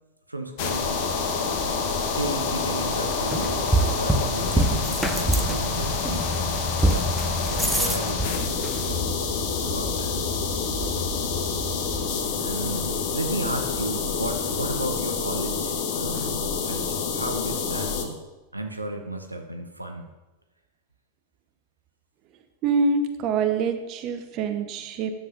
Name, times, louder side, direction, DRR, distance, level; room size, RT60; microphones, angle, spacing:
voice 1, 0.3-1.0 2.0-3.7 3.9-6.5 6.8-7.1 7.5-9.1 9.6-10.2 12.4-18.2 18.5-20.1, right 1 dB, 85° right, 5 dB, 0.6 m, -34 dB
sound 1, 0.6-18.0, left 5 dB, 45° left, 1.0 m, -27 dB
sound 2, 3.3-14.9, right 1 dB, ahead, 0.7 m, -29 dB
voice 2, 22.6-25.1, right 4 dB, 40° right, 7 dB, 0.8 m, -25 dB
9.9 x 7.3 x 2.6 m, 1.1 s
figure-of-eight pair, 90°, 0 cm